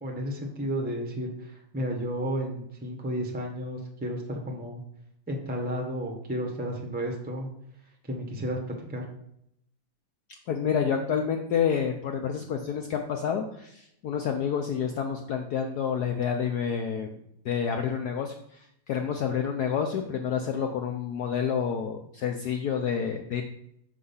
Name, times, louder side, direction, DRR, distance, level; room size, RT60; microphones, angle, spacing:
voice 1, 0.0-4.8 5.3-7.5 8.1-9.1, equal, 10° right, 2 dB, 0.5 m, -32 dB
voice 2, 10.5-17.2 17.4-23.4, left 7 dB, 75° left, 4 dB, 0.9 m, -29 dB
6.2 x 5.1 x 5.5 m, 0.76 s
omnidirectional pair, 2.3 m